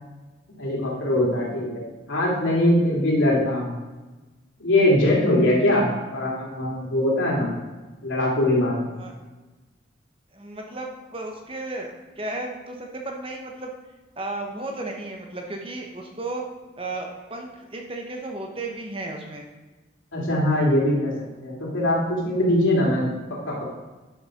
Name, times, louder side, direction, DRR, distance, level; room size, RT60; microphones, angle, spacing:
voice 1, 0.6-3.7 4.6-7.5 8.0-8.8 20.1-21.1 21.4-23.6, left 1 dB, 90° left, -4 dB, 3.0 m, -22 dB
voice 2, 10.3-13.7 14.2-16.4 16.8-19.5, right 2 dB, 30° right, 2 dB, 1.1 m, -34 dB
11.5 x 5.7 x 5.1 m, 1.2 s
head